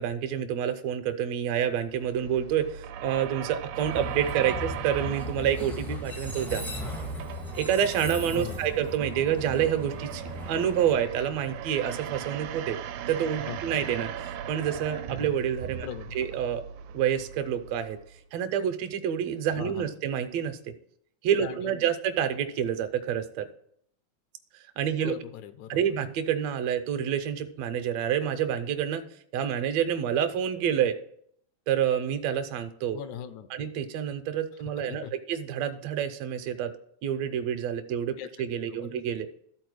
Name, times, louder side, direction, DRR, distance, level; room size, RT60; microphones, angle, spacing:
voice 1, 0.0-6.6 7.5-12.8 13.1-15.9 16.2-16.6 16.9-18.0 18.3-20.6 21.2-23.5 24.8-25.2 25.7-29.0 29.3-30.9 31.7-33.0 33.5-36.7 37.0-39.3, right 9 dB, 75° right, 8 dB, 1.8 m, -28 dB
sound 1, 1.8-18.2, right 9 dB, 90° right, 2.0 m, -39 dB
Train, 3.7-11.7, left 1 dB, 5° left, 0.3 m, -38 dB
voice 2, 8.4-8.7 13.4-13.6 15.8-16.2 19.6-19.9 21.4-21.9 25.0-25.8 32.9-33.5 34.8-35.1 38.2-38.3 38.8-39.0, left 9 dB, 85° left, 12 dB, 2.0 m, -39 dB
13.0 x 4.4 x 4.8 m, 0.65 s
omnidirectional pair, 3.3 m